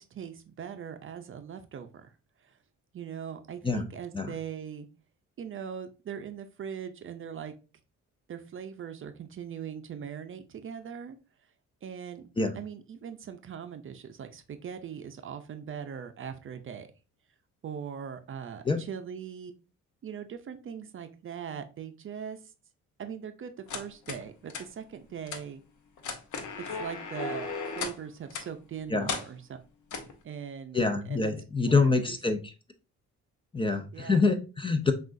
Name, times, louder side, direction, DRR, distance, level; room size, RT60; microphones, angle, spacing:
voice 1, 0.0-2.1 2.4-2.6 2.9-4.9 5.4-7.5 8.3-11.2 11.8-12.3 12.5-16.9 17.6-19.5 20.0-22.4 23.0-25.6 26.7-29.6 29.9-30.8 31.1-31.3 31.6-32.2 33.9-34.2, right 7 dB, 45° right, 8 dB, 0.5 m, -40 dB
sound 1, 23.7-24.2 24.5-24.6 25.3-25.4 26.0-28.0 28.3-28.5 29.1-29.3 29.9-30.1, left 4 dB, 75° left, 0.8 m, -35 dB
voice 2, 30.7-32.5 33.5-34.9, left 3 dB, 15° left, 8 dB, 0.5 m, -26 dB
5.9 x 2.5 x 2.5 m, 0.32 s
cardioid pair, 90°, 30 cm